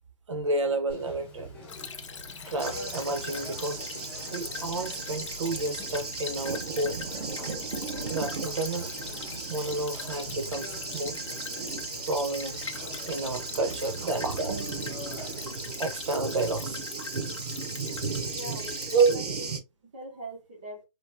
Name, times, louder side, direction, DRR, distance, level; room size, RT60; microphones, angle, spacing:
voice 1, 0.3-1.5 2.5-3.9 4.3-7.1 8.1-9.0 9.5-11.2 12.1-12.7 13.0-15.1 15.8-16.8 18.9-19.2, right 3 dB, 50° right, 0.7 m, -30 dB
Conversation, 0.9-15.7, left 1 dB, 20° left, 1.0 m, -45 dB
Stream / Trickle dribble, 1.7-19.2, left 6 dB, 50° left, 0.5 m, -42 dB
Thunder, 2.6-19.6, right 4 dB, 85° right, 0.9 m, -36 dB
voice 2, 18.3-19.5 19.8-20.8, equal, 15° right, 0.5 m, -42 dB
3.1 x 2.5 x 2.4 m
hypercardioid pair, 170°, 19 cm